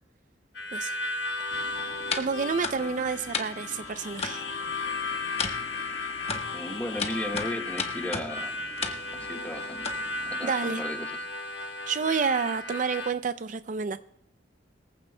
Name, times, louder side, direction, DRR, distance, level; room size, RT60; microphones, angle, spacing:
Harmonica, 0.5-13.1, left 3 dB, 65° left, 1.2 m, -35 dB
sound 1, 1.5-10.3, left 4 dB, 35° left, 1.1 m, -37 dB
voice 1, 2.2-4.4 10.4-10.8 11.9-14.0, right 5 dB, 45° right, 11 dB, 0.4 m, -29 dB
voice 2, 2.8-3.1 6.5-8.5 9.1-9.9 10.3-11.1, left 1 dB, 10° left, 2 dB, 1.5 m, -35 dB
22.0 x 15.0 x 2.2 m, 0.76 s
head